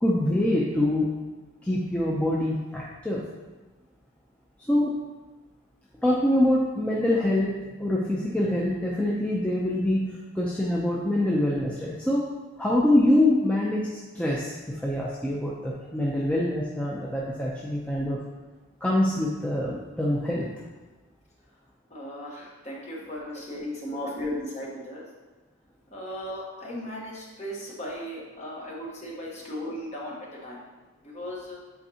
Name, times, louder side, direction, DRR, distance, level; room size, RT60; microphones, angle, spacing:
voice 1, 0.0-1.1 1.6-3.3 4.6-4.9 6.0-12.3 12.6-18.2 18.8-20.5 23.9-24.0, left 1 dB, 5° left, -5 dB, 0.5 m, -25 dB
voice 2, 21.9-25.0 25.9-30.1 30.4-30.6 31.0-31.6, left 1 dB, 30° left, -4 dB, 1.2 m, -36 dB
8.1 x 4.5 x 2.8 m, 1.2 s
head